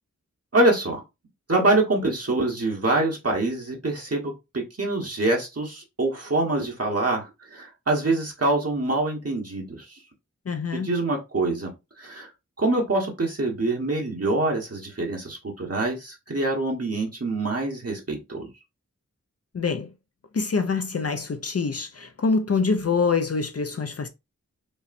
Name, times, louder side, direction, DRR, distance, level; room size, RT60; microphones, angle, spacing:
voice 1, 0.5-1.0 1.5-10.0 10.7-12.3 12.6-18.5, right 2 dB, 50° right, 1.0 m, -25 dB
voice 2, 10.5-10.9 19.5-19.9 20.3-24.1, left 4 dB, 50° left, 0.5 m, -25 dB
5.3 x 2.1 x 2.5 m
wide cardioid pair, 55°, 31 cm